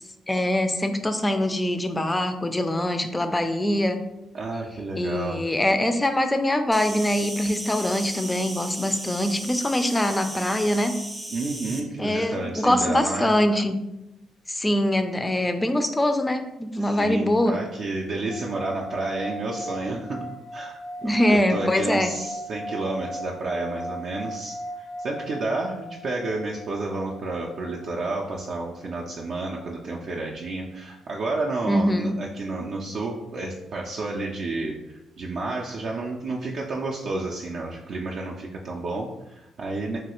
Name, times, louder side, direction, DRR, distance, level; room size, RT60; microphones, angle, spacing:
voice 1, 0.3-4.0 4.9-11.0 12.0-13.8 14.5-17.6 19.9-20.0 21.0-22.1 31.7-32.2, left 1 dB, 15° left, 8 dB, 0.3 m, -23 dB
voice 2, 4.3-5.5 11.3-13.3 16.8-20.3 20.5-20.8 21.0-40.0, right 2 dB, 55° right, -2 dB, 0.4 m, -31 dB
Insect, 6.7-11.8, right 1 dB, 20° right, 0.6 m, -36 dB
sound 1, 18.3-29.6, equal, 90° left, 0.5 m, -39 dB
3.1 x 2.3 x 2.9 m, 0.94 s
cardioid pair, 90°, 0 cm